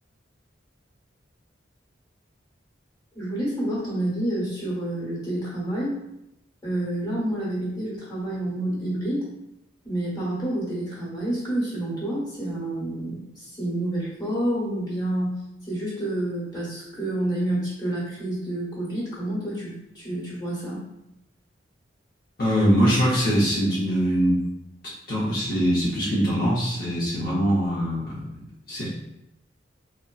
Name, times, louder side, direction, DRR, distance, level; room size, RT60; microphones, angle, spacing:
voice 1, 3.1-5.9 6.6-9.2 9.8-15.4 15.7-20.8, right 1 dB, 20° left, -7 dB, 1.2 m, -28 dB
voice 2, 22.4-24.4 24.8-28.4 28.7-29.0, equal, 55° left, -7 dB, 0.7 m, -23 dB
3.8 x 2.1 x 2.3 m, 0.86 s
head